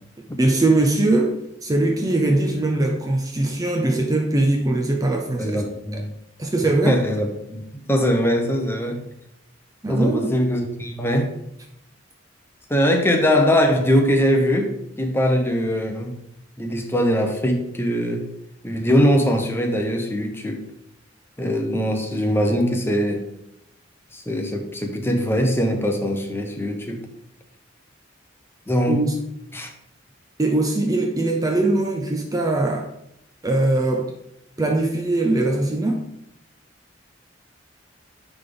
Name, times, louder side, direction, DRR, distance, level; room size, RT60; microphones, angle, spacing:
voice 1, 0.4-5.6 5.9-6.0 6.4-7.0 9.8-10.3 28.9-29.2 30.4-32.9 33.4-34.1 34.6-36.1, right 2 dB, 20° right, 0.5 m, -21 dB
voice 2, 5.4-6.1 6.9-9.0 9.9-11.3 12.7-16.2 16.6-18.2 18.6-20.6 21.4-23.2 24.1-27.0 28.7-29.0 29.5-29.7, equal, 10° left, 0.8 m, -21 dB
9.6 x 3.5 x 3.8 m
head